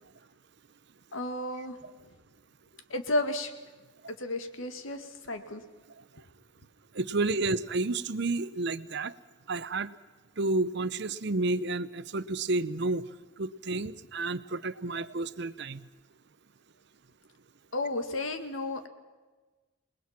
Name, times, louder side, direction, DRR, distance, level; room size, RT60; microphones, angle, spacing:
voice 1, 1.1-1.8 2.9-3.5 4.2-5.6 17.7-18.9, left 2 dB, 90° left, 8 dB, 2.1 m, -32 dB
voice 2, 6.9-9.1 9.5-9.9 10.4-13.1 13.4-15.8, right 2 dB, 60° right, 15 dB, 0.8 m, -30 dB
28.5 x 20.5 x 5.9 m, 1.3 s
head